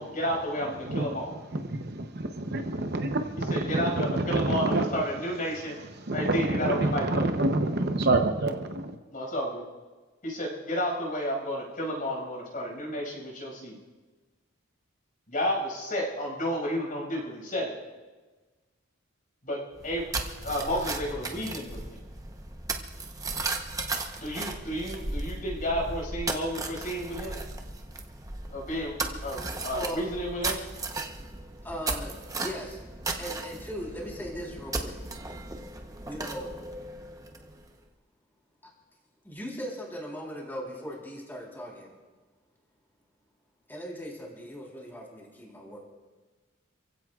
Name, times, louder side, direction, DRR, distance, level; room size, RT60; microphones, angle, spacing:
voice 1, 0.0-1.3 3.5-5.8 6.1-7.2 9.1-9.6 10.2-13.8 15.3-17.7 19.4-20.0 20.4-22.0 24.2-27.4 28.5-30.6, equal, 40° left, -1 dB, 5.9 m, -31 dB
voice 2, 0.6-5.0 5.3-9.0, right 2 dB, 50° right, 5 dB, 0.9 m, -28 dB
sound 1, 19.8-37.7, right 2 dB, 15° right, 0.9 m, -36 dB
voice 3, 29.7-30.0 31.6-32.8 33.2-35.0 36.1-36.5 38.6-38.7 39.2-41.9 43.7-45.8, equal, 10° left, -3 dB, 3.8 m, -38 dB
28.5 x 16.0 x 2.4 m, 1.3 s
head